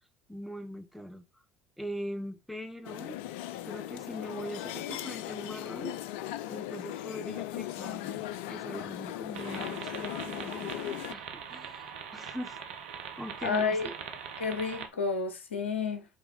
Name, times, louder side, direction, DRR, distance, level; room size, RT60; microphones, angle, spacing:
voice 1, 0.3-1.2 1.8-3.2 3.6-6.0 6.5-8.2 8.5-12.6 13.2-13.9, equal, ahead, 1.2 m, -41 dB
sound 1, 2.8-11.1, left 13 dB, 70° left, 0.4 m, -38 dB
sound 2, 9.3-14.9, right 7 dB, 75° right, 0.9 m, -42 dB
voice 2, 13.4-13.9 14.4-16.1, left 5 dB, 85° left, 0.9 m, -30 dB
9.0 x 3.5 x 3.2 m
hypercardioid pair, 60°, 6 cm